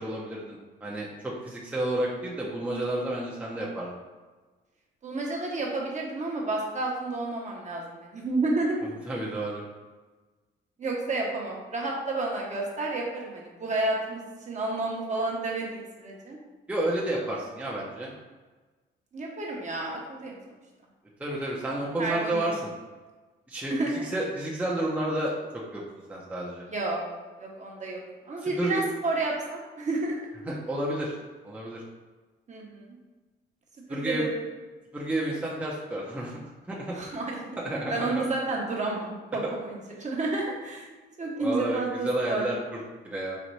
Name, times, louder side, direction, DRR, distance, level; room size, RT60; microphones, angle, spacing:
voice 1, 0.0-4.0 9.1-9.6 16.7-18.1 21.2-22.6 23.5-25.8 26.1-26.7 28.4-28.8 30.4-31.1 31.4-31.8 33.9-34.2 34.9-36.4 36.7-37.0 37.6-38.2 39.4-39.5 41.4-43.4, right 1 dB, 5° right, -4 dB, 0.6 m, -31 dB
voice 2, 5.0-8.8 10.8-16.4 19.1-20.4 22.0-22.5 23.7-24.1 26.7-27.0 27.4-28.0 28.3-30.3 32.5-33.0 33.9-34.3 36.9-37.4 37.9-40.8 41.2-42.5, right 2 dB, 35° right, -2 dB, 0.9 m, -30 dB
4.1 x 2.4 x 3.1 m, 1.3 s
cardioid pair, 90°, 20 cm